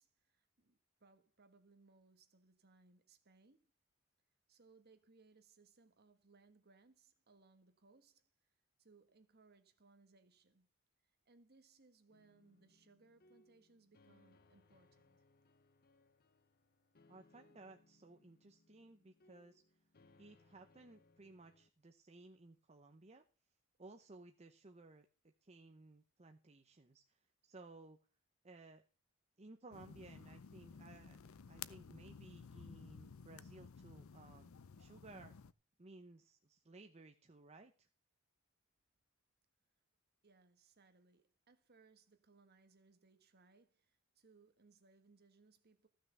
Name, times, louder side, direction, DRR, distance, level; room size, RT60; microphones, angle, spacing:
voice 1, 0.0-3.7 4.5-8.3 8.8-10.7 11.2-15.2 40.2-45.9, right 3 dB, 50° right, 1.6 m, -68 dB
sound 1, 12.1-21.7, left 2 dB, 45° left, 0.9 m, -70 dB
voice 2, 17.1-19.6 20.2-23.2 23.8-28.0 28.4-28.8 29.4-31.2 31.5-34.5 34.8-35.4 35.8-37.9, right 2 dB, 30° right, 0.9 m, -59 dB
sound 2, 29.7-35.5, left 6 dB, 90° left, 0.6 m, -54 dB
14.5 x 6.4 x 6.9 m
head